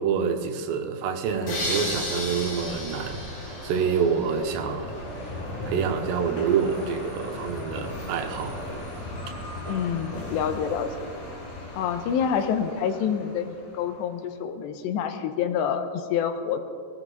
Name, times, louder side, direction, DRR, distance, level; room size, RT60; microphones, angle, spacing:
voice 1, 0.0-5.0 5.6-8.6, right 6 dB, 80° right, 6 dB, 3.2 m, -27 dB
sound 1, 1.3-14.1, left 1 dB, 70° left, 6.7 m, -37 dB
sound 2, 1.5-4.5, left 1 dB, 45° left, 4.7 m, -33 dB
voice 2, 9.7-11.1 11.7-16.6, left 7 dB, 90° left, 8 dB, 3.0 m, -27 dB
20.0 x 18.0 x 3.9 m, 2.2 s
omnidirectional pair, 5.0 m